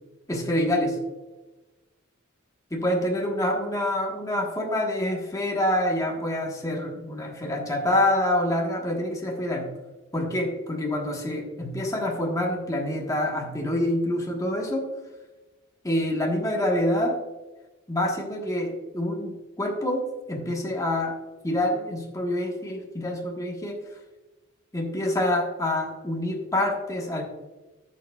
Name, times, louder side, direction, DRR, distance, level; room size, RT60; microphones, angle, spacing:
voice 1, 0.3-1.0 2.7-9.7 10.1-14.9 15.8-17.2 17.9-21.2 21.4-23.8 24.7-27.2, left 1 dB, 15° left, 0 dB, 1.3 m, -26 dB
15.0 x 6.6 x 2.3 m, 1.1 s
head